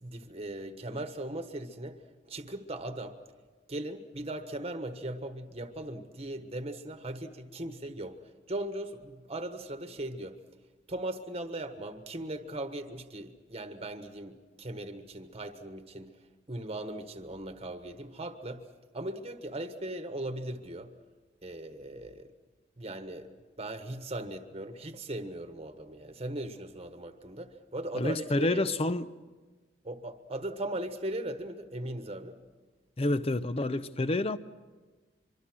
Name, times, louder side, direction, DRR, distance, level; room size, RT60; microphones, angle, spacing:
voice 1, 0.0-2.0 2.3-3.2 3.7-8.2 8.5-10.4 10.9-16.2 16.5-18.7 18.9-20.9 21.4-22.3 22.8-23.3 23.6-28.6 29.8-32.4, right 1 dB, 35° right, 1.3 m, -38 dB
voice 2, 27.9-29.1 33.0-34.4, left 2 dB, 35° left, 0.7 m, -28 dB
24.5 x 24.0 x 6.2 m
head